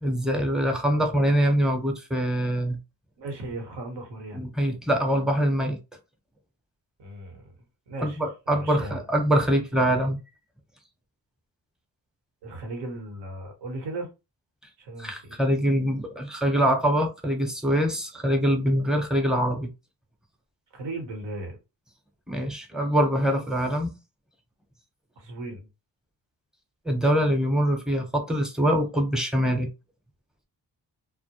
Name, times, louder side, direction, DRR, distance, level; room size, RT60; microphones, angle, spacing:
voice 1, 0.0-2.8 4.3-5.8 8.0-10.2 15.0-19.7 22.3-23.9 26.9-29.7, equal, ahead, 0.8 m, -24 dB
voice 2, 3.2-4.5 7.0-7.5 7.9-8.2 8.5-9.0 12.4-14.1 14.8-15.4 20.7-21.6 25.2-25.7, right 2 dB, 75° right, 1.1 m, -37 dB
2.1 x 2.0 x 2.9 m
cardioid pair, 60°, 42 cm